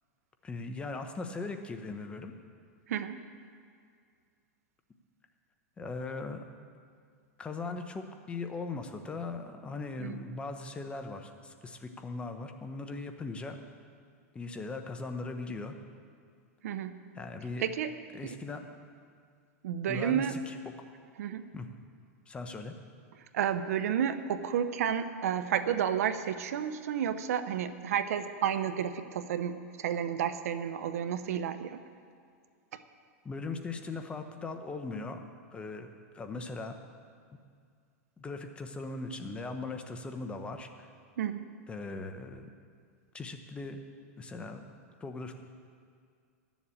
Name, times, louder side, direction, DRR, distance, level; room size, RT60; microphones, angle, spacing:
voice 1, 0.4-2.3 5.8-6.4 7.4-13.6 14.3-15.7 17.1-17.6 18.1-18.7 19.9-20.5 21.5-21.7 22.3-22.7 33.2-35.2 35.5-35.9 36.1-36.8 38.2-40.9 41.7-42.5 43.1-43.8 44.2-44.7 45.0-45.3, left 3 dB, 15° left, 6 dB, 0.8 m, -39 dB
voice 2, 2.9-3.2 10.0-10.2 16.6-17.0 17.6-17.9 18.2-18.4 19.6-20.4 21.2-21.5 23.3-31.8 41.2-41.4, right 9 dB, 75° right, 11 dB, 0.7 m, -31 dB
12.0 x 7.3 x 8.5 m, 2.2 s
supercardioid pair, 140°, 8 cm